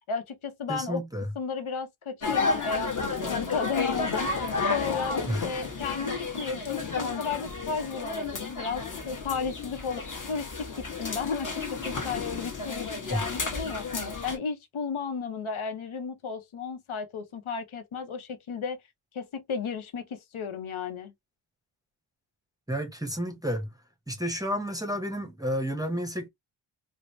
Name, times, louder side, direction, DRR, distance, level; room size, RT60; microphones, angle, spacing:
voice 1, 0.1-1.0 1.3-4.3 4.7-13.9 14.2-18.8 19.1-21.1, left 5 dB, 75° left, 0.9 m, -34 dB
voice 2, 0.7-1.3 5.3-5.5 13.1-13.2 22.7-23.7 24.1-26.3, equal, 10° right, 0.6 m, -31 dB
sound 1, 2.2-14.4, left 4 dB, 40° left, 1.2 m, -32 dB
4.7 x 2.1 x 2.6 m
wide cardioid pair, 165°, 50 cm